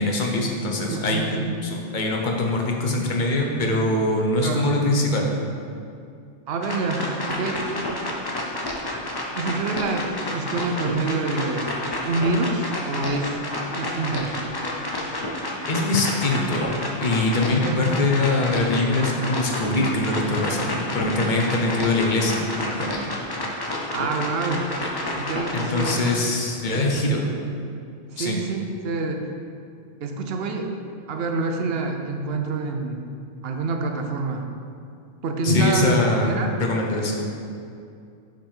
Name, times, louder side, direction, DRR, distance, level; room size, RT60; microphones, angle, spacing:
voice 1, 0.0-1.3 1.6-5.3 15.7-16.7 17.0-23.0 25.5-27.2 28.2-28.4 35.4-37.3, left 2 dB, 45° left, 0 dB, 0.8 m, -23 dB
voice 2, 0.9-1.6 4.4-4.7 6.5-7.8 9.4-10.1 10.3-11.7 12.0-13.4 13.7-14.3 17.6-17.9 23.9-24.7 25.3-26.0 26.7-27.4 28.1-29.3 30.0-30.7 31.1-33.0 33.4-34.5 35.2-35.8 36.2-36.5, right 3 dB, 60° right, 4 dB, 0.8 m, -27 dB
sound 1, 6.6-26.1, left 1 dB, 30° left, 0.4 m, -30 dB
5.3 x 5.1 x 4.4 m, 2.4 s
omnidirectional pair, 1.2 m